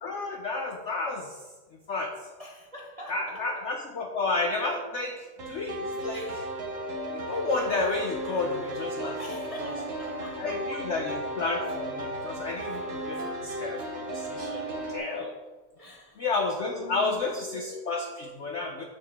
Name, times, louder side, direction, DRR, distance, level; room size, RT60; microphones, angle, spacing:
voice 1, 0.0-1.5 1.9-2.3 3.1-6.5 7.1-9.2 9.6-9.7 10.4-15.4 16.2-18.8, left 3 dB, 65° left, 3 dB, 0.7 m, -31 dB
voice 2, 2.4-3.7 6.1-6.4 9.2-11.1 15.8-16.2 16.7-17.3, right 1 dB, 65° right, -2 dB, 0.3 m, -44 dB
sound 1, 5.4-15.0, right 1 dB, 40° right, 1.0 m, -35 dB
6.9 x 6.5 x 3.4 m, 1.3 s
omnidirectional pair, 1.9 m